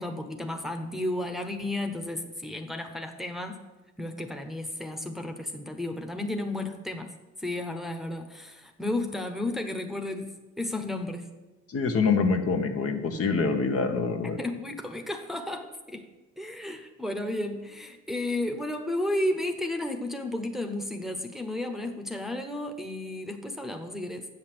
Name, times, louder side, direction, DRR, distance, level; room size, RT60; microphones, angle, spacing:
voice 1, 0.0-3.6 4.0-7.1 7.4-11.3 14.4-16.1 16.4-24.3, left 1 dB, ahead, 3 dB, 1.0 m, -33 dB
voice 2, 11.7-14.4, left 4 dB, 50° left, 5 dB, 1.2 m, -25 dB
7.5 x 6.6 x 7.8 m, 1.1 s
cardioid pair, 90°, 30 cm